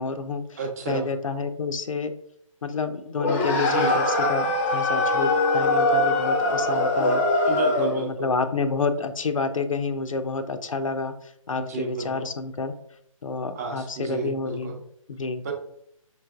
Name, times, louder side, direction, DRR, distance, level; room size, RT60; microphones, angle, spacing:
voice 1, 0.0-0.6 0.9-2.1 2.6-7.2 7.8-12.7 13.2-15.4, left 4 dB, 65° left, 8 dB, 0.5 m, -29 dB
voice 2, 0.6-1.0 3.5-3.9 7.5-8.3 11.6-12.2 13.5-14.7 15.4-15.5, right 4 dB, 30° right, 2 dB, 0.7 m, -32 dB
sound 1, 3.2-8.0, left 2 dB, 25° left, 0.6 m, -22 dB
5.5 x 3.3 x 2.3 m, 0.71 s
figure-of-eight pair, 140°, 18 cm